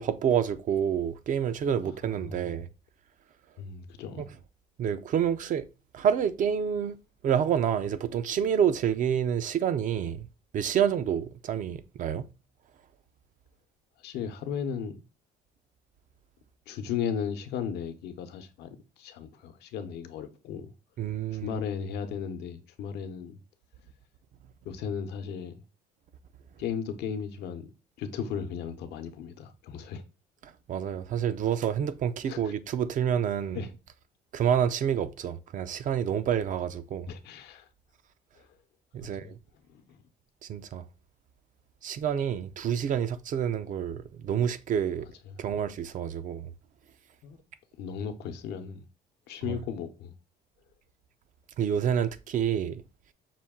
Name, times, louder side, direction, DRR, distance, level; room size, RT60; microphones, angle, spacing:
voice 1, 0.0-2.7 4.2-4.3 4.8-5.7 5.9-7.0 7.2-10.3 10.5-12.3 21.0-21.6 30.4-33.7 34.3-37.1 38.9-39.4 40.4-40.8 41.8-45.1 45.4-46.5 49.5-49.6 51.6-52.8, right 8 dB, 50° right, 0.5 m, -28 dB
voice 2, 1.7-2.5 3.6-4.3 14.0-15.0 16.7-20.7 21.3-23.4 24.6-25.5 26.6-27.7 28.0-30.0 32.3-32.5 33.5-33.7 37.1-37.7 38.4-38.5 39.0-39.3 39.7-39.8 45.3-45.4 47.2-47.4 47.8-48.8 49.3-50.1, left 7 dB, 80° left, 0.8 m, -36 dB
5.8 x 2.3 x 3.5 m
cardioid pair, 110°, 17 cm